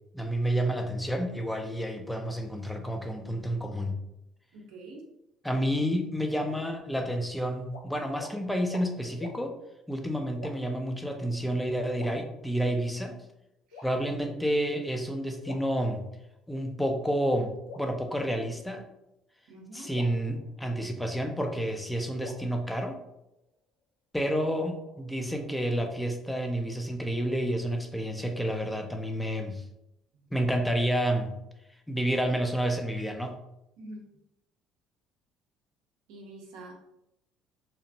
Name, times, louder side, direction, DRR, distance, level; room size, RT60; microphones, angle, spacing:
voice 1, 0.1-4.0 5.4-9.5 9.9-13.2 13.8-16.1 16.5-18.8 19.7-23.0 24.1-29.6 30.3-31.3 31.9-33.3, equal, 5° left, 4 dB, 0.4 m, -30 dB
voice 2, 4.5-5.0 13.7-13.9 19.5-19.9 30.1-30.3 33.8-34.0 36.1-36.7, right 2 dB, 80° right, -1 dB, 0.6 m, -45 dB
sound 1, 7.7-7.9 8.2-8.4 8.7-8.9 9.2-9.4 10.4-10.8 11.9-12.8 13.7-14.4 15.4-16.4 17.7-18.8 19.9-21.1 22.2-23.6 24.5-25.8, left 3 dB, 90° left, 0.4 m, -48 dB
2.8 x 2.1 x 2.7 m, 0.86 s
supercardioid pair, 75°, 0 cm